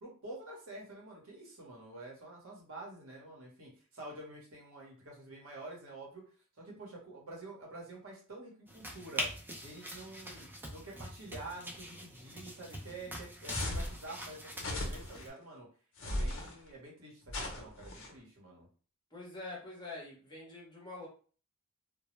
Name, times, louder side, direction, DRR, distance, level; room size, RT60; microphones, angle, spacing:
voice 1, 0.0-6.2 6.6-15.7 16.0-18.7, right 2 dB, 65° right, -2 dB, 1.0 m, -48 dB
sound 1, 8.7-15.3, equal, 10° right, 0.4 m, -43 dB
sound 2, 13.5-14.0 14.6-15.2 16.0-16.5 17.3-18.1, left 1 dB, 60° left, 0.6 m, -37 dB
voice 2, 19.1-21.1, left 2 dB, 20° left, -4 dB, 0.8 m, -45 dB
2.1 x 2.0 x 3.0 m, 0.41 s
head